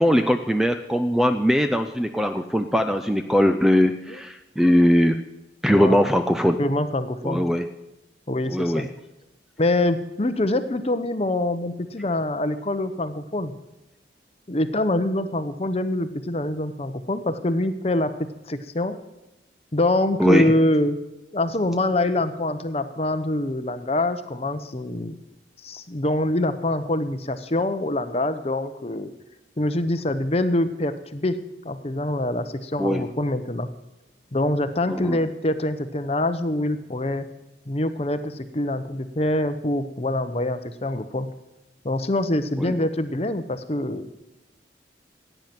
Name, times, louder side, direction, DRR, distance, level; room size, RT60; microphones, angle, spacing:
voice 1, 0.0-5.2 5.6-6.6 7.2-7.7 8.5-8.9 20.2-20.5 32.8-33.0 34.9-35.2 42.6-42.8, equal, ahead, 7 dB, 0.4 m, -20 dB
voice 2, 5.7-6.0 6.6-7.5 8.3-8.9 9.6-13.5 14.5-19.0 19.7-21.0 21.3-25.2 25.6-29.1 29.6-31.4 31.6-33.7 34.3-37.3 37.7-41.3 41.8-44.1, left 1 dB, 35° left, 10 dB, 0.8 m, -25 dB
16.0 x 9.1 x 6.0 m, 0.98 s
head